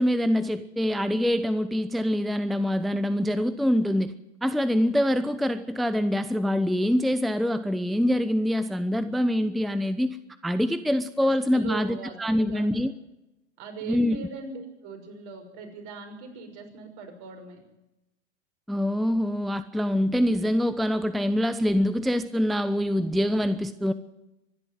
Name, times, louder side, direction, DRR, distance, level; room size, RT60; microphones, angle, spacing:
voice 1, 0.0-4.1 4.4-10.2 10.4-12.9 13.9-14.2 18.7-23.9, equal, ahead, 0.7 m, -25 dB
voice 2, 11.2-12.7 13.6-17.6, right 5 dB, 50° right, 6.2 m, -40 dB
24.5 x 11.5 x 9.3 m
hypercardioid pair, 90°, 34 cm